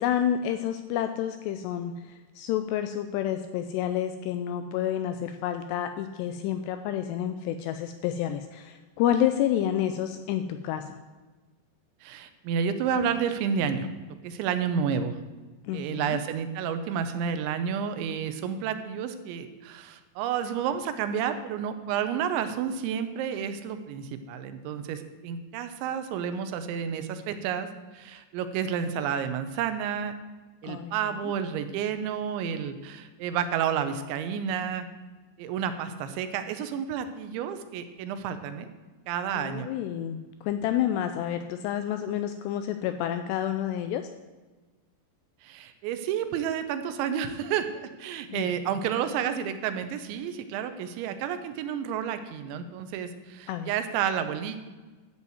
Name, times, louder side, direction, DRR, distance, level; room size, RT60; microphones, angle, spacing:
voice 1, 0.0-11.0 15.7-16.2 30.6-30.9 31.2-31.3 39.4-44.0 48.3-48.5 53.5-53.7, left 10 dB, 85° left, 8 dB, 2.4 m, -29 dB
voice 2, 12.0-13.9 14.2-15.2 15.7-27.7 27.9-30.1 30.6-34.9 35.4-38.7 39.1-39.7 45.4-54.6, right 8 dB, 85° right, 9 dB, 3.1 m, -30 dB
12.0 x 5.5 x 7.9 m, 1.3 s
omnidirectional pair, 5.3 m